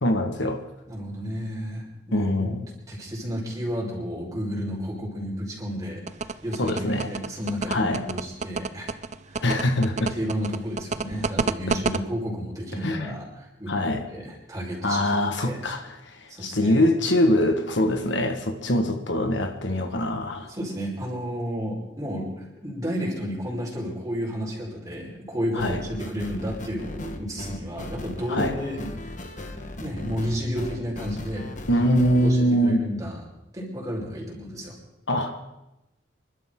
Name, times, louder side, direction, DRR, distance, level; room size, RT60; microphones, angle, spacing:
voice 1, 0.0-0.6 2.1-2.7 6.6-7.1 7.7-8.0 9.4-10.1 12.8-13.1 13.7-14.0 14.8-20.5 25.6-25.8 28.3-28.5 31.7-32.8 35.1-35.5, left 1 dB, 75° left, 5 dB, 1.7 m, -23 dB
voice 2, 0.9-2.6 2.9-8.9 9.3-9.4 10.0-13.7 14.1-15.6 16.3-16.8 20.5-29.1 29.4-31.8 32.2-33.2 33.5-34.7, equal, 20° right, -4 dB, 4.8 m, -32 dB
sound 1, 6.1-12.0, right 4 dB, 40° right, 0.5 m, -28 dB
sound 2, 25.6-32.3, left 1 dB, 45° left, 1.5 m, -38 dB
27.5 x 12.0 x 3.9 m, 0.94 s
head